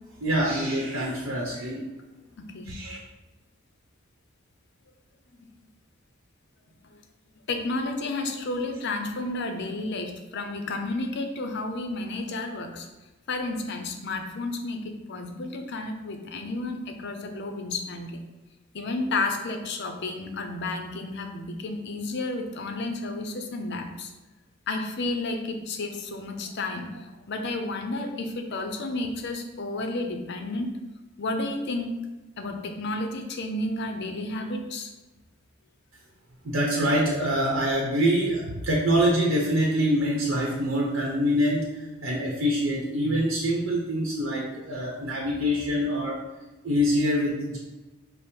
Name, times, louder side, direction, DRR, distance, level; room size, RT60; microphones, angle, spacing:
voice 1, 0.2-1.8 2.6-3.0 36.4-41.6 42.0-46.2 46.6-47.6, equal, 75° right, -2 dB, 0.8 m, -25 dB
voice 2, 2.4-2.7 5.4-5.5 7.5-12.9 13.3-18.2 18.7-24.1 24.7-30.7 31.2-31.9 32.4-34.9, left 2 dB, 60° left, 5 dB, 0.6 m, -31 dB
5.1 x 2.1 x 4.4 m, 1.1 s
head